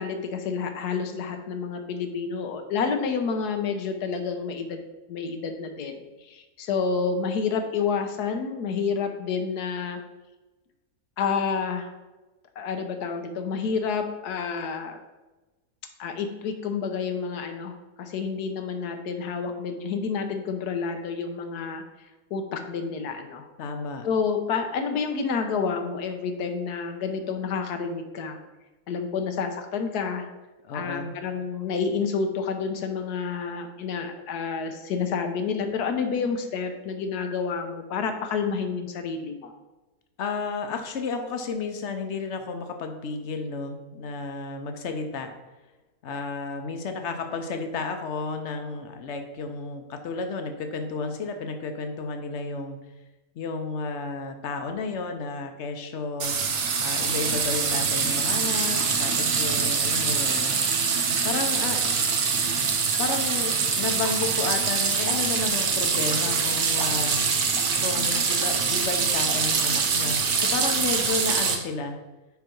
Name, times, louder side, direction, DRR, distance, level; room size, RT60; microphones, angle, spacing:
voice 1, 0.0-4.8 5.1-10.0 11.2-11.9 12.6-15.0 16.0-21.8 22.3-23.5 24.0-28.4 28.9-30.3 30.7-39.5, left 5 dB, 85° left, 6 dB, 1.3 m, -29 dB
voice 2, 23.6-24.1 30.7-31.2 40.2-45.3 46.0-52.8 53.3-60.5 61.2-61.9 63.0-67.2 67.8-72.0, left 4 dB, 55° left, 5 dB, 0.9 m, -32 dB
sound 1, 56.2-71.6, right 5 dB, 55° right, 1.0 m, -24 dB
sound 2, 65.2-71.4, right 4 dB, 75° right, 0.3 m, -42 dB
5.7 x 5.0 x 4.4 m, 1.1 s
omnidirectional pair, 1.6 m